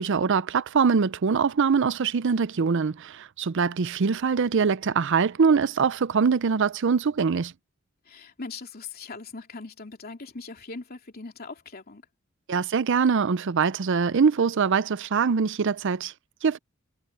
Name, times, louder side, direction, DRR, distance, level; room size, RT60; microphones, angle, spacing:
voice 1, 0.0-7.5 12.5-16.1 16.4-16.6, right 5 dB, 60° right, 0.5 m, -23 dB
voice 2, 8.0-12.0, left 3 dB, 45° left, 2.9 m, -40 dB
head